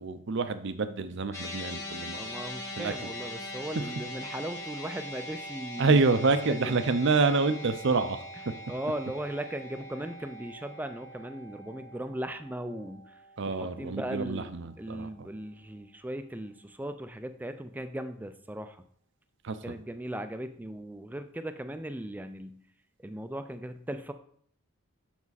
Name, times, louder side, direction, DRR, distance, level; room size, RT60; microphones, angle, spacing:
voice 1, 0.0-2.3 2.8-3.1 5.8-8.2 13.4-15.3 19.4-19.7, right 3 dB, 60° right, 11 dB, 0.6 m, -27 dB
sound 1, 1.3-13.8, left 1 dB, 15° left, 1.3 m, -42 dB
voice 2, 2.2-6.0 6.5-6.8 8.7-13.2 13.5-14.5 14.8-18.8 19.6-22.6 23.0-24.1, right 1 dB, 10° right, 9 dB, 0.4 m, -38 dB
7.2 x 6.2 x 4.1 m, 0.62 s
head